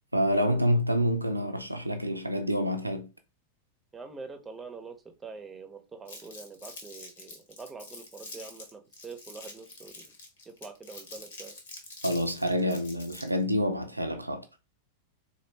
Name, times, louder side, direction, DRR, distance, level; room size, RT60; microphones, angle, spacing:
voice 1, 0.1-3.1 12.0-14.5, equal, 85° right, 0.4 m, -27 dB
voice 2, 3.9-10.1 10.5-11.5, right 4 dB, 15° right, 0.7 m, -45 dB
Crumpling crinkling, 6.1-13.4, left 2 dB, 60° left, 1.2 m, -46 dB
4.1 x 2.6 x 3.1 m
figure-of-eight pair, 90°, 0 cm